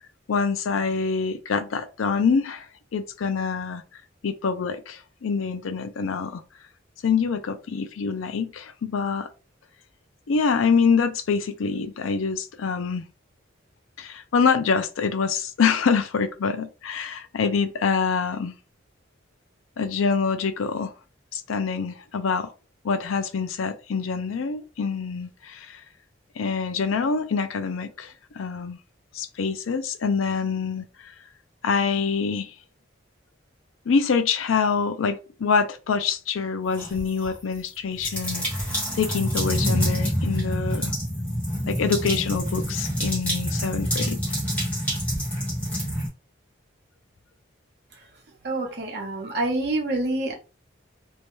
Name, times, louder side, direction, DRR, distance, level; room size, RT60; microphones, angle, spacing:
voice 1, 0.3-2.7 2.9-3.8 4.2-6.4 7.0-9.3 10.3-13.1 14.0-18.5 19.8-20.9 21.3-22.5 22.8-25.8 26.4-28.8 29.1-31.1 31.6-32.5 33.9-38.5 38.9-40.9 41.7-44.4, left 5 dB, 85° left, 0.4 m, -25 dB
sound 1, 36.7-37.3 38.0-46.1, equal, 5° left, 1.0 m, -27 dB
voice 2, 48.4-50.3, right 2 dB, 50° right, 0.8 m, -27 dB
2.7 x 2.2 x 3.0 m
head